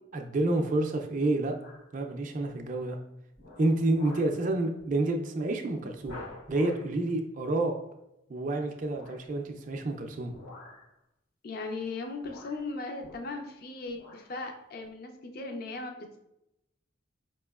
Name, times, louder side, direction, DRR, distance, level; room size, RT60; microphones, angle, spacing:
voice 1, 0.1-1.6 1.9-3.0 3.6-6.2 6.5-7.7 8.3-10.3, right 2 dB, 40° right, 3 dB, 0.4 m, -29 dB
sound 1, 1.6-2.0 2.5-2.8 3.4-4.4 4.8-5.0 5.3-5.4 6.0-6.9 8.9-9.3 10.3-10.9 11.8-11.9 12.2-13.6 13.9-14.3 14.8-14.9, left 2 dB, 65° left, 1.2 m, -49 dB
voice 2, 11.4-16.2, left 3 dB, 45° left, 4 dB, 0.4 m, -38 dB
4.8 x 2.9 x 2.3 m, 0.85 s
head